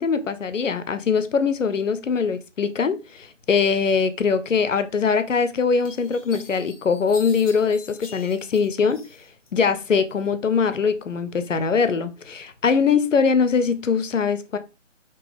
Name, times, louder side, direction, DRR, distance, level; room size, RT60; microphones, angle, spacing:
voice 1, 0.0-9.0 9.5-14.6, left 5 dB, 80° left, 0.6 m, -22 dB
sound 1, 5.1-5.2 5.8-9.5 9.8-10.6, left 4 dB, 30° left, 0.8 m, -45 dB
3.5 x 2.9 x 3.3 m
figure-of-eight pair, 145°, 38 cm